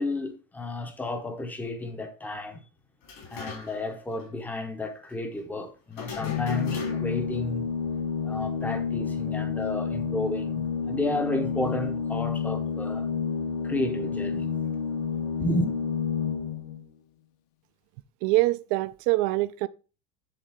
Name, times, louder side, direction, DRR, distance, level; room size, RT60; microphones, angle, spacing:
voice 1, 0.0-2.6 3.3-7.7 8.2-13.1 13.6-14.5 15.4-15.7, left 2 dB, 5° left, 0.7 m, -32 dB
sound 1, 3.0-3.9 4.2-4.3 5.9-7.3, left 4 dB, 70° left, 3.6 m, -39 dB
Organ, 6.1-16.8, left 6 dB, 40° left, 0.8 m, -30 dB
voice 2, 18.2-19.7, right 19 dB, 40° right, 0.4 m, -24 dB
10.0 x 4.0 x 3.5 m
supercardioid pair, 165°, 36 cm